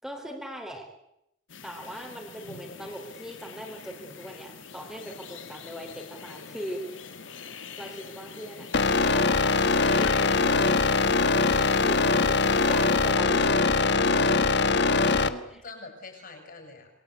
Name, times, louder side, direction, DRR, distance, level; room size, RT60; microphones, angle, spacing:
voice 1, 0.0-0.9 1.6-6.8 7.8-8.7 9.1-11.0 11.5-13.8 15.2-15.6, equal, 5° right, 1 dB, 3.8 m, -40 dB
sound 1, 1.5-13.2, left 5 dB, 85° left, 2.8 m, -43 dB
sound 2, 8.7-15.3, left 3 dB, 65° left, 1.4 m, -22 dB
voice 2, 11.5-11.8 13.8-14.2 14.8-16.9, left 3 dB, 50° left, 4 dB, 7.4 m, -43 dB
27.0 x 22.0 x 8.5 m, 0.84 s
head